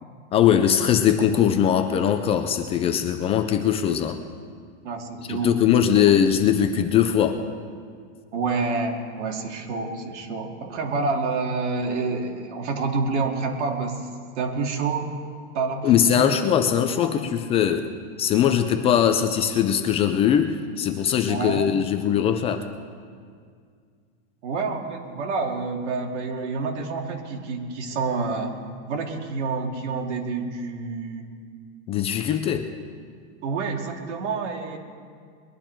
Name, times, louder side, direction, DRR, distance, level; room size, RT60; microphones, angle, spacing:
voice 1, 0.3-4.2 5.3-7.4 15.8-17.9 18.2-22.7 31.9-32.7, left 9 dB, 20° left, 7 dB, 0.3 m, -21 dB
voice 2, 4.8-5.6 5.9-6.1 8.3-14.1 14.4-15.1 15.5-16.3 17.0-17.1 21.3-21.7 24.4-28.6 28.9-31.3 33.4-34.8, right 4 dB, 80° right, 2 dB, 2.2 m, -28 dB
21.5 x 11.0 x 4.5 m, 2.1 s
supercardioid pair, 150°, 35 cm